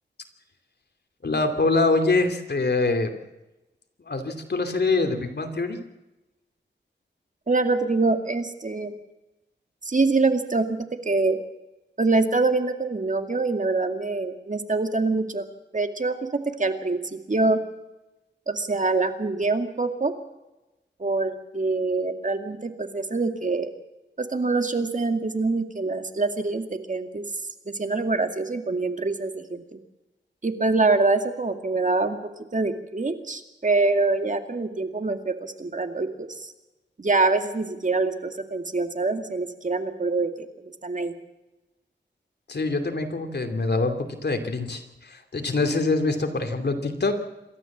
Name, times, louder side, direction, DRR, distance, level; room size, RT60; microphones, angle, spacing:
voice 1, 1.2-3.1 4.0-5.8 42.5-47.2, left 3 dB, 60° left, 6 dB, 2.8 m, -24 dB
voice 2, 7.5-8.9 9.8-11.4 12.0-15.4 15.7-16.2 16.4-17.6 18.5-20.1 21.0-23.7 24.2-27.3 27.7-29.8 30.4-32.2 32.5-36.5 37.0-41.1, right 3 dB, 40° right, 7 dB, 2.2 m, -25 dB
27.0 x 13.5 x 7.4 m, 1.0 s
wide cardioid pair, 75°, 20 cm